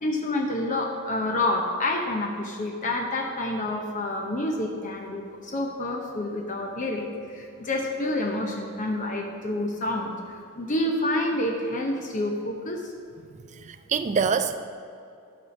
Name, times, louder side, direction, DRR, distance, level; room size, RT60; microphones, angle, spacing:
voice 1, 0.0-10.2 10.6-12.8, left 1 dB, 35° left, 1 dB, 0.7 m, -28 dB
voice 2, 13.5-14.6, right 6 dB, 30° right, 10 dB, 0.3 m, -25 dB
12.5 x 4.2 x 5.9 m, 2.5 s
head